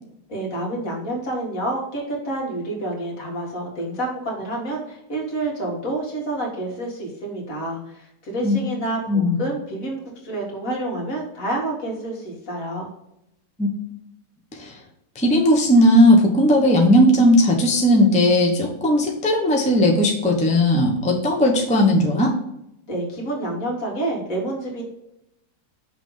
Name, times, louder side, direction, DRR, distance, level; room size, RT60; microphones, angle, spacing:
voice 1, 0.3-12.9 22.9-24.8, right 1 dB, 50° left, -2 dB, 2.2 m, -28 dB
voice 2, 9.1-9.4 13.6-13.7 14.6-14.7 15.1-22.3, left 1 dB, 5° left, -1 dB, 0.7 m, -17 dB
5.9 x 3.5 x 5.4 m, 0.81 s
omnidirectional pair, 1.9 m